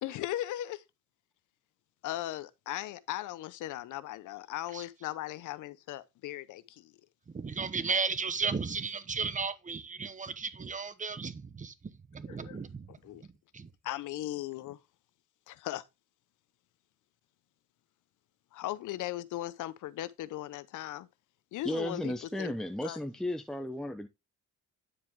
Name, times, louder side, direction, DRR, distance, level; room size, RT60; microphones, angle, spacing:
voice 1, 0.0-0.8 2.0-6.9 12.3-12.6 13.0-13.2 13.8-14.8 15.5-15.8 18.5-21.1 21.5-22.5 22.8-23.0, left 14 dB, 80° left, 0.7 m, -38 dB
voice 2, 7.3-13.7, right 5 dB, 25° right, 0.9 m, -35 dB
voice 3, 21.6-24.1, equal, ahead, 0.8 m, -34 dB
9.8 x 4.5 x 3.6 m
cardioid pair, 90°, 30 cm